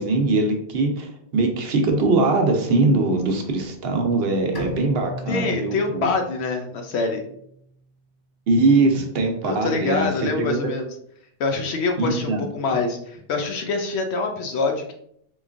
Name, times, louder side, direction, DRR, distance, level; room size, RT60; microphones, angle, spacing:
voice 1, 0.0-6.1 8.5-10.6 12.0-12.4, right 2 dB, 65° right, 3 dB, 0.8 m, -21 dB
Bowed string instrument, 4.5-7.8, right 1 dB, 30° left, 0.4 m, -37 dB
voice 2, 5.3-7.2 9.4-10.9 11.4-14.9, left 4 dB, 70° left, 3 dB, 0.8 m, -25 dB
3.8 x 3.1 x 2.5 m, 0.70 s
omnidirectional pair, 1.2 m